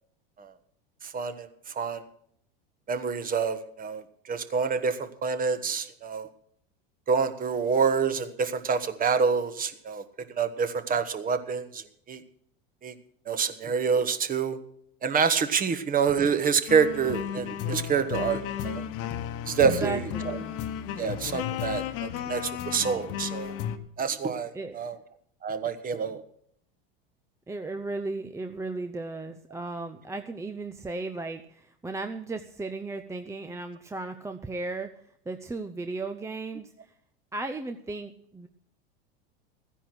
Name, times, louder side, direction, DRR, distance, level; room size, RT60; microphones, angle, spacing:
voice 1, 1.0-1.5 1.7-2.0 2.9-6.3 7.1-10.0 10.3-12.2 12.8-12.9 13.3-14.6 15.0-18.8 19.5-20.4 21.0-23.5 24.0-25.0 25.4-26.2, right 6 dB, 30° right, 11 dB, 1.3 m, -27 dB
sound 1, 16.7-23.8, left 9 dB, 50° left, 1.3 m, -33 dB
voice 2, 19.6-20.6 24.5-24.8 27.5-34.9 35.3-36.7 37.3-38.5, right 3 dB, 10° right, 7 dB, 0.7 m, -35 dB
14.5 x 10.0 x 6.1 m, 0.69 s
hypercardioid pair, 100°, 30 cm